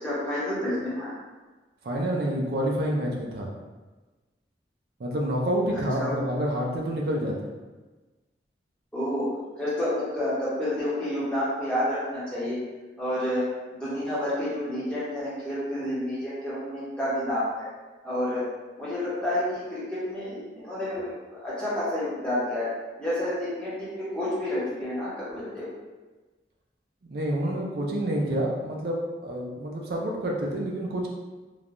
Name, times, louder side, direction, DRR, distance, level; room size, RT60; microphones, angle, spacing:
voice 1, 0.0-1.1 5.7-6.1 8.9-9.3 9.6-12.6 13.0-13.4 13.8-17.7 18.0-18.4 18.8-22.7 23.0-25.7, left 1 dB, 5° left, -10 dB, 0.8 m, -29 dB
voice 2, 1.8-3.5 5.0-7.5 27.1-31.1, right 1 dB, 60° right, -1 dB, 0.4 m, -28 dB
3.2 x 2.2 x 2.5 m, 1.2 s
head